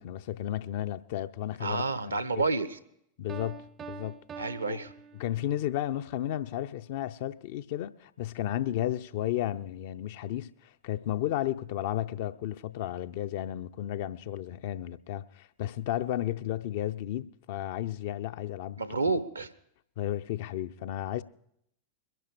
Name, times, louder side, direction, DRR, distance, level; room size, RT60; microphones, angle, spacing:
voice 1, 0.0-2.4 3.2-4.2 4.6-4.8 5.2-18.8 20.0-21.2, left 12 dB, 50° left, 0.6 m, -33 dB
voice 2, 1.6-2.8 4.4-4.9 18.8-19.5, right 3 dB, 80° right, 0.9 m, -29 dB
Piano, 3.3-5.7, right 6 dB, 25° right, 0.6 m, -45 dB
22.0 x 11.0 x 4.9 m
figure-of-eight pair, 90°, 0 cm